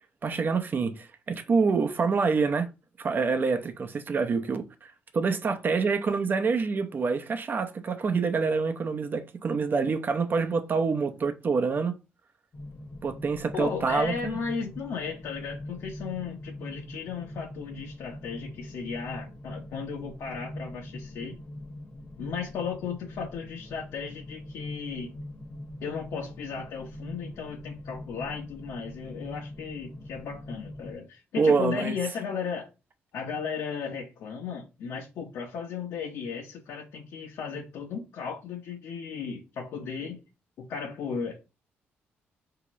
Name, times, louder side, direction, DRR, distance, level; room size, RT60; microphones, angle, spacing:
voice 1, 0.2-2.7 3.0-11.9 13.0-14.4 31.4-31.9, right 4 dB, 45° right, 0.7 m, -26 dB
sound 1, 12.5-30.9, left 1 dB, 35° left, 0.9 m, -42 dB
voice 2, 13.5-21.4 22.2-25.1 25.8-32.7 33.1-40.2 40.6-41.4, left 6 dB, 80° left, 0.9 m, -35 dB
4.8 x 2.9 x 3.1 m
cardioid pair, 85°, 5 cm